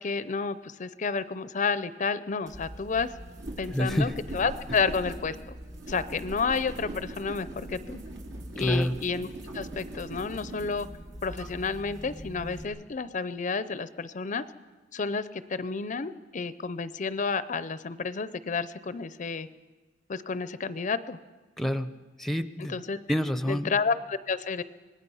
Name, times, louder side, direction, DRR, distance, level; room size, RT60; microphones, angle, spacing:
voice 1, 0.0-3.1 3.6-5.5 5.9-8.0 8.6-9.3 9.5-10.9 11.2-14.4 14.9-19.5 20.1-21.2 22.7-23.0 23.5-24.6, left 5 dB, 45° left, 14 dB, 0.5 m, -30 dB
sound 1, 2.5-12.6, right 1 dB, 70° right, 2.6 m, -41 dB
voice 2, 3.7-4.1 8.6-9.0 21.6-21.9 22.2-22.8 23.1-23.7, equal, ahead, 11 dB, 0.7 m, -27 dB
26.0 x 19.5 x 5.5 m, 1.3 s
head